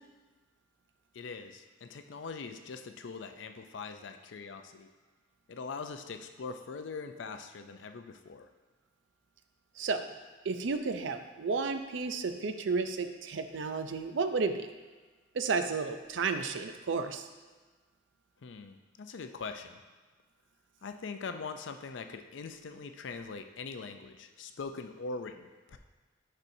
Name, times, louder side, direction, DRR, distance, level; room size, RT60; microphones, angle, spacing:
voice 1, 1.1-4.9 5.5-8.5 18.4-19.8 20.8-25.8, left 4 dB, 70° left, 7 dB, 0.5 m, -42 dB
voice 2, 9.8-10.1 10.5-14.7 15.3-17.3, right 4 dB, 70° right, 8 dB, 0.5 m, -32 dB
10.5 x 4.3 x 2.7 m, 1.3 s
head